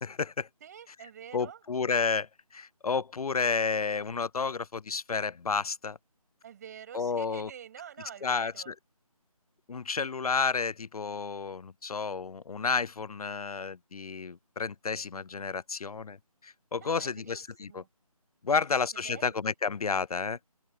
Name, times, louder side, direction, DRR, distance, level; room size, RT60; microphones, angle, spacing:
voice 1, 0.0-0.5 1.3-6.0 6.9-7.5 8.2-8.7 9.7-16.2 16.4-17.8 18.4-20.4, left 5 dB, 70° left, 0.4 m, -31 dB
voice 2, 0.6-1.7 6.4-8.7 16.8-17.9 18.5-18.8 19.0-19.4, right 9 dB, 25° right, 6.5 m, -48 dB
open air
figure-of-eight pair, 155°, 19 cm